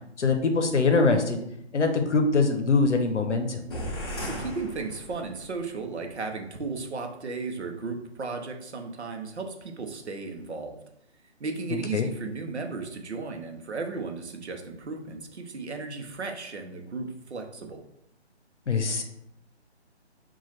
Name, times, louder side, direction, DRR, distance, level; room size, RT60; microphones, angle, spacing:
voice 1, 0.2-1.4 1.7-3.6 11.7-12.1 18.7-19.0, left 4 dB, 85° left, 5 dB, 0.7 m, -23 dB
sound 1, 3.7-5.5, equal, 25° left, 0.6 m, -36 dB
voice 2, 4.2-10.7 11.4-17.8, right 4 dB, 75° right, 4 dB, 0.7 m, -35 dB
2.9 x 2.3 x 4.1 m, 0.77 s
figure-of-eight pair, 145°, 34 cm